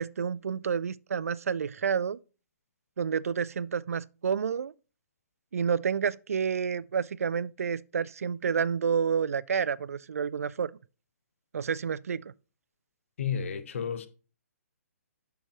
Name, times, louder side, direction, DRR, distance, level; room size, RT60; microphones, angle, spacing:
voice 1, 0.0-2.2 3.0-4.7 5.5-10.7 11.5-12.3, right 6 dB, 70° right, 0.4 m, -29 dB
voice 2, 13.2-14.1, left 7 dB, 55° left, 1.2 m, -31 dB
9.6 x 6.9 x 3.0 m
figure-of-eight pair, 130°, 8 cm